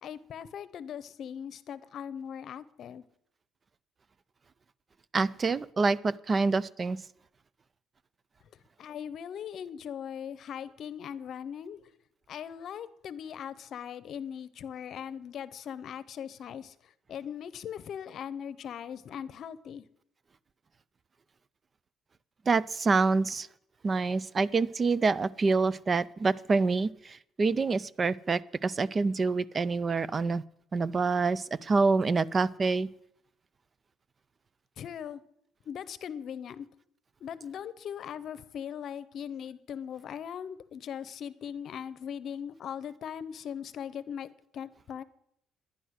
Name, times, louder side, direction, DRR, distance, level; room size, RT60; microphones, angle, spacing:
voice 1, 0.0-3.0 8.8-11.8 12.3-16.7 17.1-19.8 34.8-35.2 35.7-36.7 37.2-45.0, left 8 dB, 55° left, 16 dB, 0.8 m, -40 dB
voice 2, 5.1-7.0 22.5-23.5 23.8-30.4 30.7-32.9, right 4 dB, 30° right, 20 dB, 0.4 m, -26 dB
11.5 x 10.0 x 6.4 m, 0.74 s
cardioid pair, 115°, 0 cm